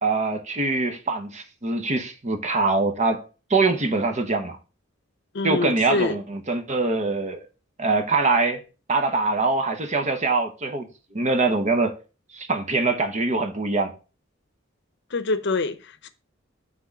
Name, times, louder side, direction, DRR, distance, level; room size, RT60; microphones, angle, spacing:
voice 1, 0.0-3.2 3.5-4.6 5.4-7.4 7.8-8.6 8.9-11.9 12.3-13.9, right 3 dB, 35° right, 0.9 m, -23 dB
voice 2, 5.3-6.2 15.1-16.1, left 3 dB, 60° left, 0.7 m, -25 dB
6.0 x 3.7 x 5.7 m
head